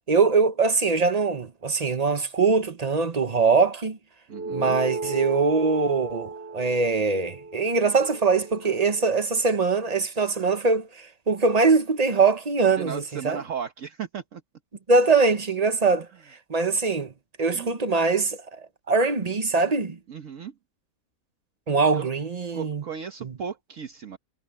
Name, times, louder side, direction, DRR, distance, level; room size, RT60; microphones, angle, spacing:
voice 1, 0.1-4.0 4.5-13.4 14.9-16.1 16.5-17.1 17.4-20.0 21.7-22.8 23.2-23.3, right 4 dB, 30° right, 1.0 m, -22 dB
sound 1, 4.3-9.1, right 3 dB, 10° right, 1.2 m, -35 dB
voice 2, 4.3-4.8 12.8-14.4 17.5-17.7 20.1-20.5 21.9-22.1 22.5-24.2, right 7 dB, 60° right, 1.5 m, -36 dB
omnidirectional pair, 1.5 m